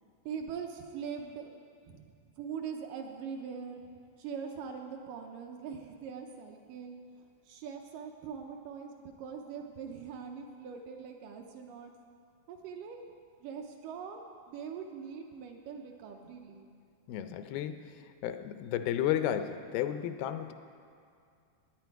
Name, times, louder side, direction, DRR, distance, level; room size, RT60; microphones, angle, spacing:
voice 1, 0.3-1.5 1.9-3.9 4.2-7.0 7.5-11.9 12.5-13.0 13.4-16.7, right 6 dB, 75° right, 3 dB, 2.1 m, -42 dB
voice 2, 17.1-17.9 18.2-20.5, left 11 dB, 85° left, 9 dB, 2.5 m, -32 dB
17.5 x 9.5 x 4.6 m, 2.4 s
omnidirectional pair, 4.2 m